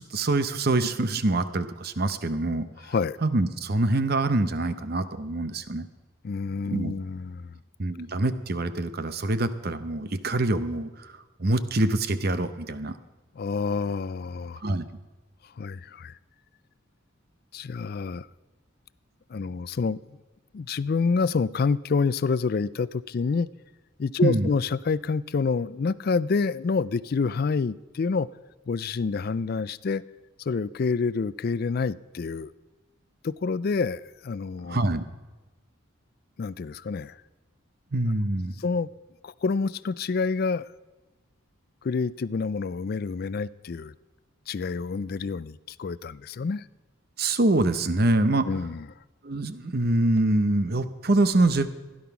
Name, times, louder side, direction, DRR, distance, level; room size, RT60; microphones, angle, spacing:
voice 1, 0.0-2.7 3.2-5.9 6.7-6.9 7.8-11.1 11.4-13.0 14.6-14.8 24.2-24.5 34.7-35.0 37.9-38.6 47.2-48.5 49.2-51.7, right 2 dB, 50° right, 11 dB, 0.8 m, -25 dB
voice 2, 2.8-3.2 6.2-7.5 13.4-14.6 15.6-16.1 17.5-18.3 19.3-20.2 20.5-23.5 24.0-28.3 28.7-30.0 30.4-32.5 33.2-34.8 36.4-37.2 38.6-38.9 39.2-40.7 41.8-43.9 44.5-46.7 48.4-48.9, left 4 dB, 45° left, 18 dB, 0.4 m, -28 dB
16.0 x 11.0 x 5.9 m, 1.2 s
head